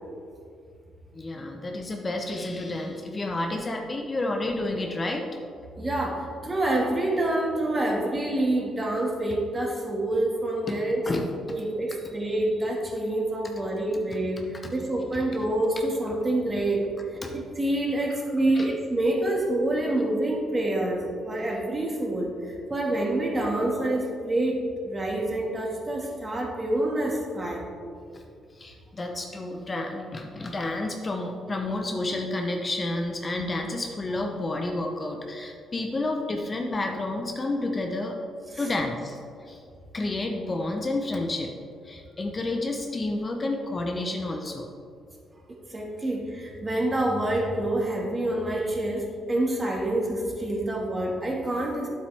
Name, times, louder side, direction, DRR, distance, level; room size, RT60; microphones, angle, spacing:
voice 1, 1.1-5.3 10.7-11.6 14.6-14.7 15.1-15.3 17.2-17.3 18.5-18.7 28.1-28.2 28.5-38.2 38.6-39.6 39.9-41.5 41.8-44.7, left 2 dB, 30° left, 2 dB, 0.8 m, -30 dB
voice 2, 5.8-11.0 11.4-27.6 38.5-38.7 45.6-51.9, right 1 dB, 25° right, -1 dB, 1.8 m, -27 dB
9.3 x 7.6 x 3.5 m, 2.4 s
cardioid pair, 90°, 0 cm